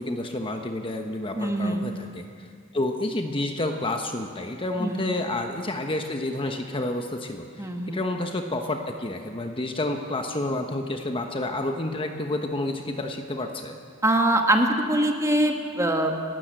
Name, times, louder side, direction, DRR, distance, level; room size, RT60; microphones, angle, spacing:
voice 1, 0.0-2.5 2.7-13.7, left 2 dB, 25° left, 4 dB, 1.1 m, -29 dB
voice 2, 1.3-1.8 4.8-5.0 7.6-8.0 14.0-16.1, right 1 dB, 15° right, 3 dB, 1.8 m, -23 dB
28.0 x 13.0 x 7.7 m, 2.2 s
head